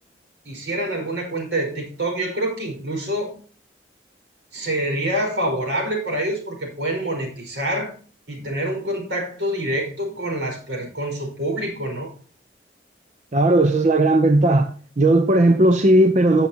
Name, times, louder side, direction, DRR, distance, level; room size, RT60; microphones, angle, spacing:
voice 1, 0.4-3.4 4.5-7.9 8.3-12.1, right 1 dB, 80° right, 5.0 m, -26 dB
voice 2, 13.3-14.7 15.0-16.5, right 1 dB, 40° right, 0.7 m, -16 dB
15.5 x 7.3 x 2.8 m
head